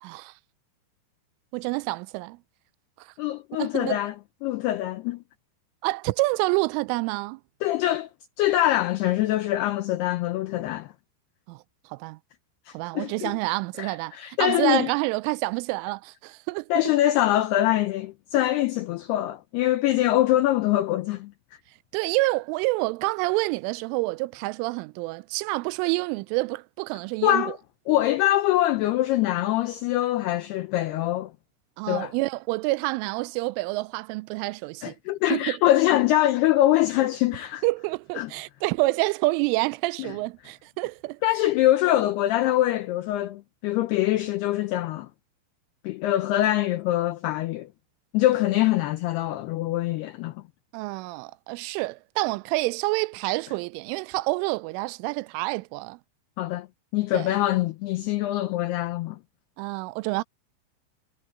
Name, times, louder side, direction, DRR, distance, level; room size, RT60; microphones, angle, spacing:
voice 1, 0.0-0.3 1.5-2.4 3.0-3.1 3.6-4.0 5.8-7.4 11.5-11.6 11.9-12.2 12.7-14.1 14.4-16.7 21.9-27.5 31.8-34.9 35.3-35.6 37.6-41.2 50.7-56.0 57.1-57.3 59.6-60.2, right 23 dB, 85° right, 3.0 m, -28 dB
voice 2, 3.2-4.2 4.4-5.2 7.6-8.1 8.4-10.9 12.7-13.3 13.8-14.9 16.7-21.3 27.2-27.6 27.9-31.3 31.9-32.1 34.8-37.6 38.2-38.3 40.0-40.2 41.2-45.1 45.8-47.7 48.1-50.4 56.4-56.7 56.9-59.2, left 14 dB, 85° left, 2.3 m, -24 dB
omnidirectional pair, 5.6 m